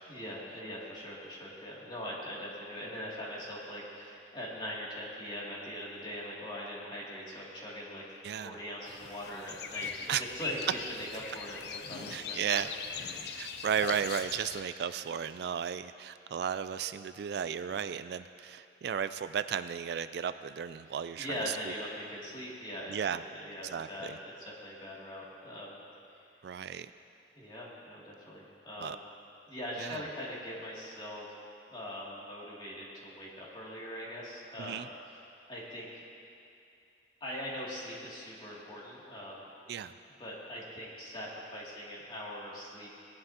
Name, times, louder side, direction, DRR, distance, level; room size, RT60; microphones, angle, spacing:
voice 1, 0.1-8.0 8.4-12.7 21.2-24.1 24.4-25.8 27.3-29.0 29.5-31.3 31.7-35.2 35.5-35.9 37.2-42.9, equal, 30° left, -6 dB, 2.6 m, -42 dB
voice 2, 8.2-8.6 10.1-10.2 12.1-12.7 13.3-21.7 22.9-23.2 23.7-24.2 26.4-26.9 28.8-29.0 29.8-30.0 34.6-34.9 39.7-39.9, right 8 dB, 65° right, 12 dB, 0.3 m, -34 dB
sound 1, 8.9-14.6, left 6 dB, 65° left, 0.6 m, -41 dB
18.5 x 11.0 x 2.9 m, 2.6 s
head